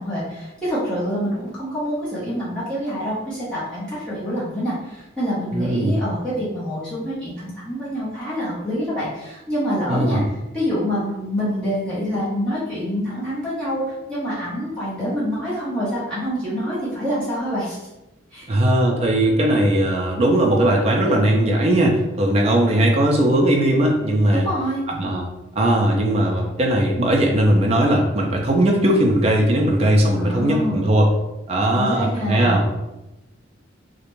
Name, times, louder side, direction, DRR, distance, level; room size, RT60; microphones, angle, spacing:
voice 1, 0.0-10.2 10.5-17.8 18.3-18.5 24.3-24.9 30.2-30.8 31.7-32.6, equal, 5° left, -11 dB, 0.8 m, -26 dB
voice 2, 5.5-6.0 9.9-10.2 18.5-24.5 24.9-25.2 25.6-31.1 31.5-32.6, right 1 dB, 30° right, 0 dB, 0.3 m, -18 dB
2.4 x 2.1 x 3.0 m, 0.97 s
head